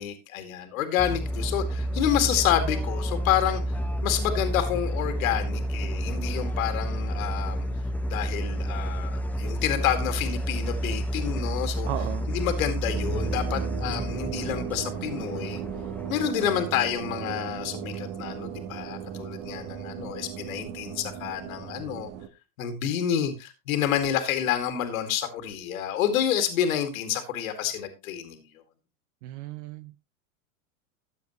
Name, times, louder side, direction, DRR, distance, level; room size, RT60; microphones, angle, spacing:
voice 1, 0.0-3.6 4.0-7.7 8.1-11.9 12.3-15.6 16.1-22.1 22.6-28.4, left 10 dB, 70° left, 7 dB, 2.2 m, -28 dB
sound 1, 1.0-16.3, equal, 5° left, 1.0 m, -30 dB
voice 2, 11.9-12.3 29.2-30.1, right 13 dB, 60° right, 13 dB, 0.8 m, -35 dB
sound 2, 12.9-22.3, right 8 dB, 35° right, 1.5 m, -36 dB
14.0 x 8.4 x 3.0 m, 0.26 s
hypercardioid pair, 105°, 42 cm